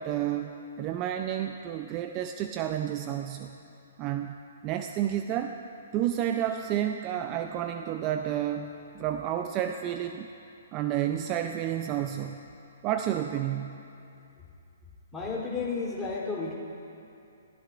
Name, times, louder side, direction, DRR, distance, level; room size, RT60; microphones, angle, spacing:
voice 1, 0.0-3.5 4.0-4.3 4.6-5.6 5.9-10.3 10.7-12.4 12.8-13.8, right 11 dB, 30° right, 6 dB, 0.5 m, -30 dB
voice 2, 15.1-16.5, left 4 dB, 10° left, -6 dB, 3.3 m, -32 dB
21.0 x 15.0 x 2.5 m, 2.6 s
hypercardioid pair, 130°, 0 cm